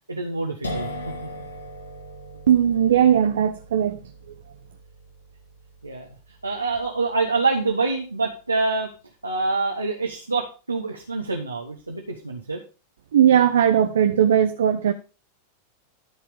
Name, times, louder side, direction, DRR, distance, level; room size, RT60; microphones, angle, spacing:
voice 1, 0.1-0.9 1.2-1.3 5.8-6.1 6.4-8.9 9.2-12.6, right 3 dB, 80° right, 1.5 m, -26 dB
sound 1, 0.6-8.2, equal, 80° left, 2.2 m, -39 dB
voice 2, 2.5-4.0 13.1-14.9, right 9 dB, 65° right, 0.7 m, -18 dB
13.5 x 4.9 x 5.3 m
figure-of-eight pair, 90°, 0 cm